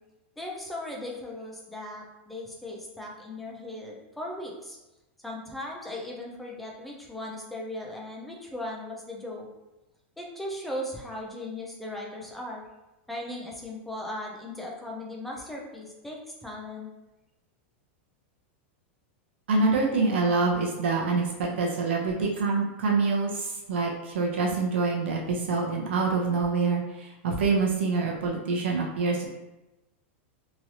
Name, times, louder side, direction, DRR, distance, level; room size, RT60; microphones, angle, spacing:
voice 1, 0.4-4.8 5.2-9.5 10.2-12.6 13.1-16.9, left 1 dB, ahead, -2 dB, 0.3 m, -38 dB
voice 2, 19.5-29.3, right 4 dB, 70° right, -1 dB, 0.7 m, -26 dB
3.0 x 2.7 x 2.8 m, 1.0 s
supercardioid pair, 180°, 7 cm